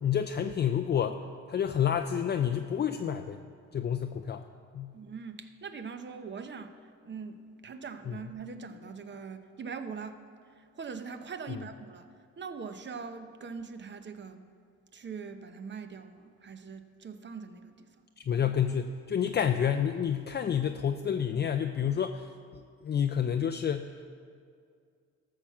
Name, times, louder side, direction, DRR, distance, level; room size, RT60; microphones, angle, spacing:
voice 1, 0.0-1.2 1.5-3.4 3.7-4.4 4.7-4.9 18.2-22.3 22.5-24.1, left 8 dB, 35° left, 7 dB, 0.4 m, -29 dB
voice 2, 4.9-6.8 7.0-10.2 10.5-14.4 14.9-17.9, right 5 dB, 35° right, 9 dB, 0.8 m, -42 dB
13.5 x 5.8 x 7.2 m, 2.3 s
cardioid pair, 90°, 30 cm